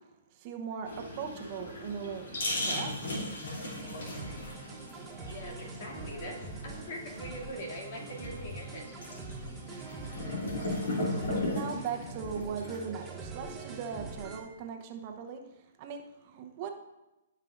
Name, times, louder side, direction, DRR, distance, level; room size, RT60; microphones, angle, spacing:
voice 1, 0.3-3.1 11.4-15.4 15.8-16.7, right 6 dB, 40° right, 4 dB, 1.0 m, -39 dB
sound 1, 0.9-13.1, left 1 dB, 75° left, 2.9 m, -37 dB
sound 2, 3.8-14.4, right 4 dB, 15° right, 1.8 m, -44 dB
voice 2, 5.2-9.0, equal, 60° left, -2 dB, 2.6 m, -42 dB
14.5 x 5.6 x 2.6 m, 0.99 s
hypercardioid pair, 130°, 0 cm